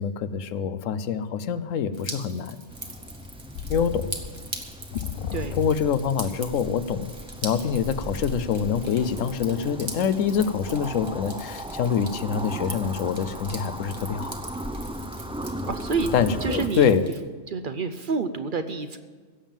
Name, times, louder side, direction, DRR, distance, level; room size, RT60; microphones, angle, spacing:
voice 1, 0.0-2.6 3.7-4.1 5.6-7.1 7.4-14.3 16.1-17.1, left 7 dB, 85° left, 13 dB, 1.1 m, -25 dB
Drip, 1.9-17.2, right 2 dB, 20° right, 1.2 m, -42 dB
sound 1, 2.7-16.7, equal, 5° right, 0.5 m, -37 dB
sound 2, 2.8-6.2, left 9 dB, 60° left, 0.6 m, -35 dB
voice 2, 15.7-16.1 16.4-16.9 17.5-19.0, right 4 dB, 50° right, 10 dB, 0.7 m, -28 dB
16.5 x 7.2 x 7.3 m, 1.5 s
omnidirectional pair, 1.3 m